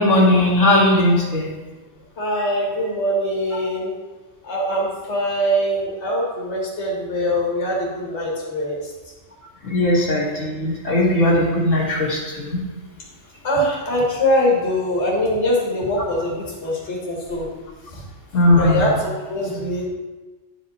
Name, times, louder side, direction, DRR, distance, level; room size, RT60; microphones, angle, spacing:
voice 1, 0.0-1.5 9.6-12.6 18.3-18.9, left 1 dB, 85° left, -5 dB, 2.0 m, -18 dB
voice 2, 2.2-3.9 4.4-8.8 13.4-17.5 17.9-18.0 18.6-19.9, equal, 65° left, -4 dB, 1.9 m, -22 dB
10.5 x 5.0 x 4.1 m, 1.2 s
omnidirectional pair, 1.3 m